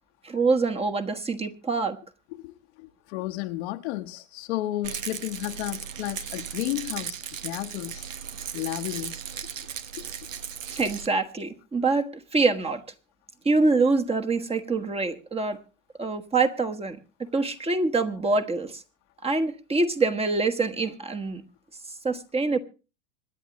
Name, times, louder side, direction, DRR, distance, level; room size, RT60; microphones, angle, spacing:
voice 1, 0.2-2.0 10.7-12.8 13.4-15.6 16.0-18.8 19.2-21.4 22.0-22.6, right 3 dB, 15° right, 1.3 m, -25 dB
voice 2, 2.3-7.2 7.4-8.1 8.5-9.2 10.0-10.1, left 16 dB, 60° left, 1.1 m, -32 dB
Rattle, 4.8-11.1, right 8 dB, 85° right, 1.0 m, -36 dB
26.0 x 10.0 x 3.1 m
hypercardioid pair, 95°, 38 cm